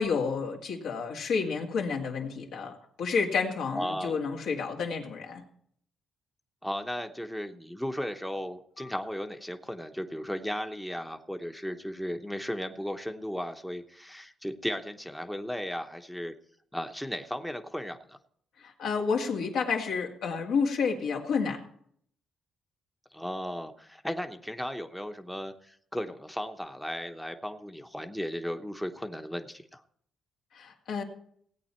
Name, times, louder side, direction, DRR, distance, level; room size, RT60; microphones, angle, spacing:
voice 1, 0.0-5.4 8.8-8.9 18.6-21.6 30.5-31.0, left 5 dB, 80° left, 1 dB, 2.0 m, -30 dB
voice 2, 3.7-4.2 6.6-16.3 16.7-18.2 23.1-29.8, equal, 5° left, 6 dB, 0.9 m, -35 dB
17.0 x 8.4 x 4.4 m, 0.66 s
cardioid pair, 90°, 0 cm